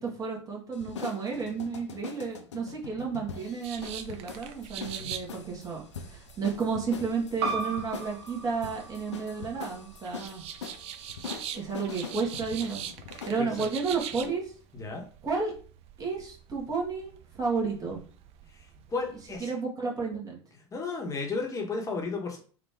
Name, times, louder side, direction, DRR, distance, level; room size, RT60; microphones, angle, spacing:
voice 1, 0.0-10.4 11.5-12.8 13.2-14.5 15.2-15.5 16.0-18.0 19.4-20.4, right 5 dB, 25° right, -2 dB, 1.8 m, -32 dB
sound 1, 0.7-13.4, left 6 dB, 85° left, 0.6 m, -43 dB
sound 2, 3.6-19.4, right 9 dB, 45° right, 0.6 m, -44 dB
voice 2, 4.8-5.1 13.1-13.7 14.7-15.1 18.5-18.6 18.9-19.5 20.7-22.4, left 4 dB, 20° left, 1 dB, 1.4 m, -34 dB
sound 3, 7.4-12.6, right 4 dB, 75° right, 1.0 m, -38 dB
3.9 x 2.9 x 3.7 m, 0.41 s
hypercardioid pair, 90°, 15 cm